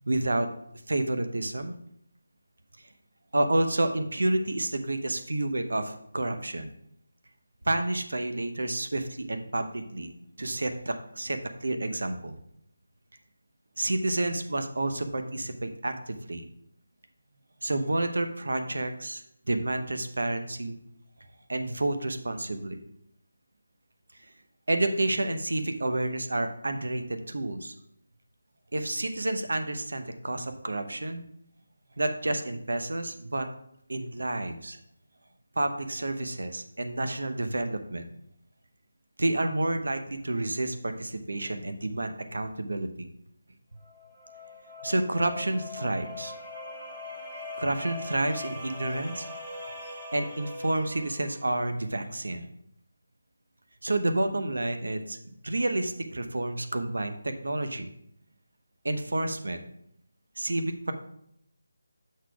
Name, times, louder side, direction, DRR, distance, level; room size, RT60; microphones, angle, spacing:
voice 1, 0.1-0.5 0.9-1.8 2.8-2.9 3.3-6.7 7.7-10.1 10.4-12.4 13.8-16.5 17.6-20.8 21.5-22.8 24.7-27.7 28.7-31.2 32.0-33.5 33.9-34.8 35.6-38.1 39.2-43.1 44.8-46.3 47.6-49.3 50.1-52.5 53.8-57.9 58.8-59.6 60.4-60.9, right 2 dB, 80° right, 7 dB, 0.8 m, -29 dB
sound 1, 43.8-51.5, left 2 dB, 15° right, 0.9 m, -41 dB
6.5 x 4.1 x 4.6 m, 0.71 s
figure-of-eight pair, 175°, 0 cm